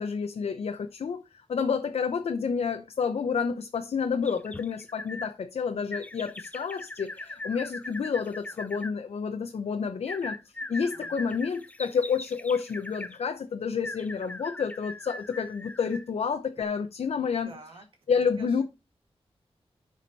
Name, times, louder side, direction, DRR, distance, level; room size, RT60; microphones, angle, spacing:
voice 1, 0.0-17.5 18.1-18.6, left 6 dB, 80° left, 0.8 m, -29 dB
sound 1, 4.2-5.3 5.9-8.9 10.1-13.2 13.8-16.1 16.6-16.7, left 2 dB, 15° left, 0.6 m, -40 dB
voice 2, 17.4-17.9 18.1-18.6, right 3 dB, 60° right, 2.2 m, -48 dB
12.0 x 5.1 x 4.2 m
wide cardioid pair, 175°, 10 cm